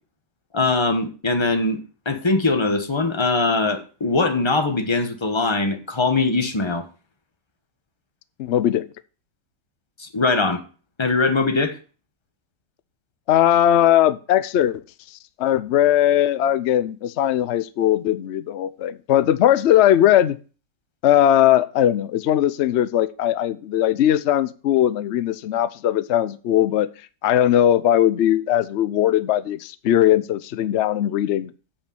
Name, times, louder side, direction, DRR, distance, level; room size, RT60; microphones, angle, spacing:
voice 1, 0.5-1.8 2.0-6.9 10.0-10.6 11.0-11.8, left 3 dB, 20° left, 1.0 m, -21 dB
voice 2, 8.4-8.9 13.3-14.8 15.4-20.4 21.0-26.9 27.2-31.5, left 11 dB, 75° left, 0.6 m, -19 dB
8.7 x 5.2 x 6.8 m
omnidirectional pair, 1.8 m